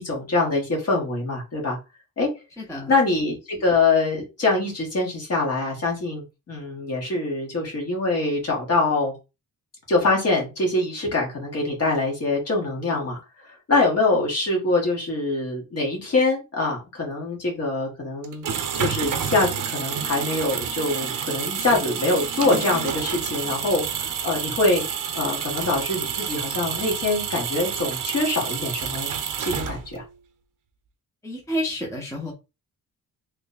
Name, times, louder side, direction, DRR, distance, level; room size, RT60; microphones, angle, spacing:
voice 1, 0.0-1.8 2.2-2.3 2.9-9.1 9.9-18.4 18.7-23.8 24.2-24.8 25.1-29.1 29.4-30.0, left 3 dB, 45° left, -1 dB, 1.4 m, -24 dB
voice 2, 2.6-2.9 31.2-32.3, equal, 10° left, 0 dB, 0.6 m, -29 dB
sound 1, 18.2-30.1, right 7 dB, 65° right, 0.6 m, -29 dB
3.1 x 2.1 x 3.9 m, 0.28 s
wide cardioid pair, 155°, 35 cm